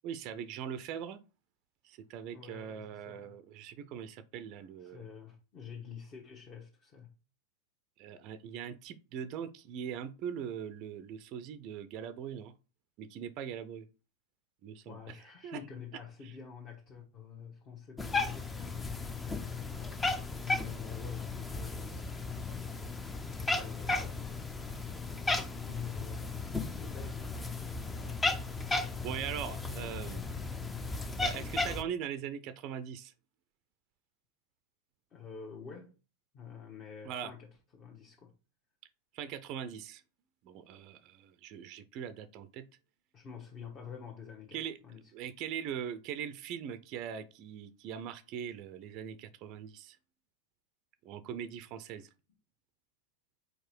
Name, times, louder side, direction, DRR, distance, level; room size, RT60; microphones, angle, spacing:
voice 1, 0.0-1.2 1.8-5.0 8.0-12.5 13.0-13.9 14.6-15.0 15.4-15.6 29.0-30.3 31.2-33.1 37.1-37.3 39.1-40.0 40.4-42.6 44.5-44.8 45.1-50.0 51.0-52.1, right 8 dB, 40° right, 0.5 m, -41 dB
voice 2, 2.3-3.4 4.8-7.1 14.8-22.8 23.4-24.0 25.1-28.3 35.1-35.9 36.3-38.3 43.1-45.1, left 7 dB, 30° left, 1.2 m, -48 dB
Cat, 18.0-31.8, left 3 dB, 10° left, 0.6 m, -35 dB
4.6 x 4.5 x 4.5 m
figure-of-eight pair, 90°, 0 cm